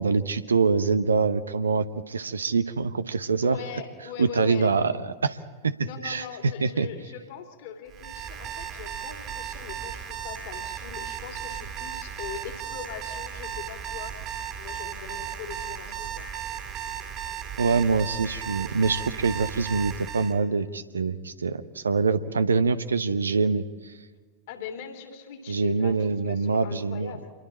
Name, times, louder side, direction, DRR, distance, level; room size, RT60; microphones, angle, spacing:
voice 1, 0.0-3.6 4.2-5.4 5.6-5.7 6.0-6.3 6.6-6.9 17.6-23.9 25.5-27.1, right 4 dB, 75° right, 12 dB, 0.9 m, -25 dB
voice 2, 3.4-4.7 5.8-14.2 14.6-16.3 24.5-27.3, left 8 dB, 50° left, 4 dB, 3.1 m, -40 dB
Alarm, 7.9-20.4, right 9 dB, 35° right, 2.5 m, -36 dB
27.5 x 22.0 x 4.4 m, 1.5 s
figure-of-eight pair, 90°, 0 cm